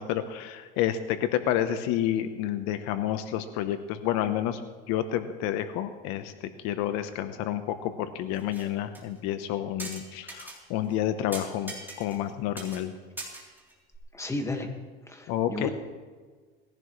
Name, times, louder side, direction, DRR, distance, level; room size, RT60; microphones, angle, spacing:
voice 1, 0.0-4.6 4.9-6.3 6.6-12.9 15.3-15.7, left 11 dB, 65° left, 9 dB, 1.1 m, -29 dB
sound 1, 8.3-8.7 8.9-9.0 9.8-10.6 10.9-11.0 11.3-12.3 12.6-12.8 13.2-14.0, right 2 dB, 5° right, 3.5 m, -40 dB
voice 2, 14.1-14.7 15.0-15.7, left 2 dB, 10° left, 3 dB, 1.9 m, -33 dB
20.0 x 15.5 x 3.3 m, 1.5 s
supercardioid pair, 120°, 30 cm